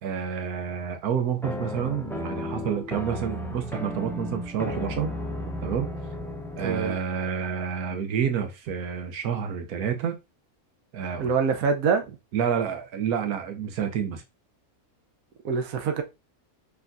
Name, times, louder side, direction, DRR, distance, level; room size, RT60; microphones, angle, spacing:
voice 1, 0.0-5.1 5.6-5.9 6.6-10.2 10.9-11.3 12.3-14.2, right 7 dB, 90° right, 1.3 m, -29 dB
sound 1, 1.4-7.0, left 1 dB, 5° left, 0.4 m, -34 dB
voice 2, 6.6-7.0 11.2-12.2 15.4-16.0, right 5 dB, 70° right, 1.2 m, -25 dB
5.8 x 3.5 x 2.6 m
omnidirectional pair, 1.6 m